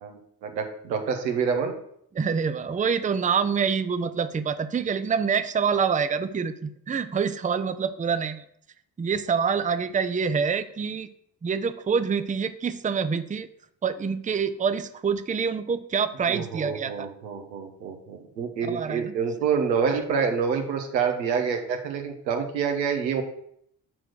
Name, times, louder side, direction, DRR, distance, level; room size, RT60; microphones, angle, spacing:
voice 1, 0.0-1.7 16.3-23.2, right 6 dB, 90° right, 4 dB, 1.0 m, -27 dB
voice 2, 2.1-8.5 9.0-11.1 11.4-13.5 13.8-17.1 18.6-19.1, right 6 dB, 15° right, 12 dB, 0.6 m, -26 dB
6.0 x 4.5 x 6.4 m, 0.70 s
hypercardioid pair, 40°, 49 cm